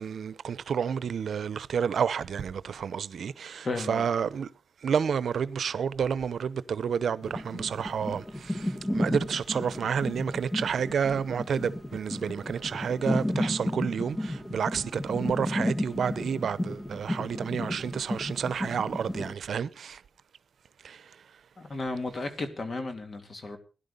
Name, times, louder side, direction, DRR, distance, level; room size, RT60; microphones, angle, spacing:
voice 1, 0.0-4.5 4.8-20.0 20.8-21.0, right 7 dB, 85° right, 0.7 m, -30 dB
voice 2, 3.6-4.1 21.6-23.6, left 3 dB, 45° left, 2.7 m, -34 dB
sound 1, 7.2-19.3, left 1 dB, 15° left, 1.2 m, -33 dB
16.5 x 11.0 x 5.3 m
wide cardioid pair, 105°, 0 cm